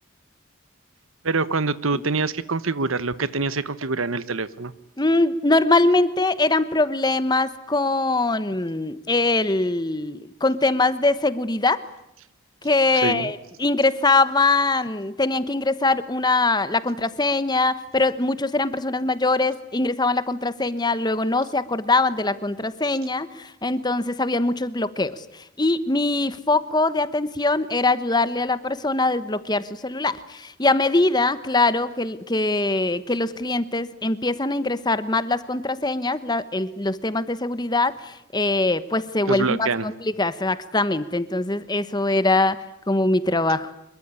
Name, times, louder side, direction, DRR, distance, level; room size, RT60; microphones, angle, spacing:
voice 1, 1.2-4.7 12.9-13.3 39.3-39.9, right 3 dB, 75° right, 16 dB, 1.2 m, -25 dB
voice 2, 5.0-11.8 12.6-43.7, left 2 dB, 20° left, 14 dB, 1.1 m, -22 dB
25.5 x 22.5 x 9.8 m, 0.81 s
head